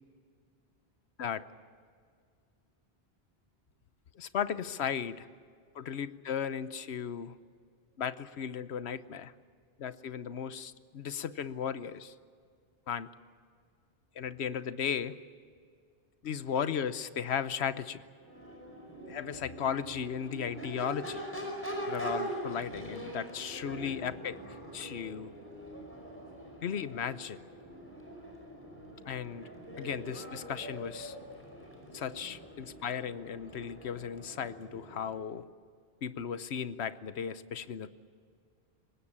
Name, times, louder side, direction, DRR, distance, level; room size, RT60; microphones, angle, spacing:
voice 1, 4.2-5.3 5.7-7.3 8.0-9.3 9.8-12.1 12.9-13.1 14.2-15.2 16.2-18.0 19.1-21.2 21.9-25.3 26.6-27.4 29.1-29.5 29.8-31.2 31.9-35.4 36.0-37.9, left 8 dB, 85° left, 14 dB, 1.1 m, -36 dB
Crowd / Race car auto racing / Accelerating revving vroom, 18.2-35.2, right 1 dB, 10° left, 5.3 m, -43 dB
24.0 x 20.0 x 8.7 m, 2.2 s
omnidirectional pair, 1.1 m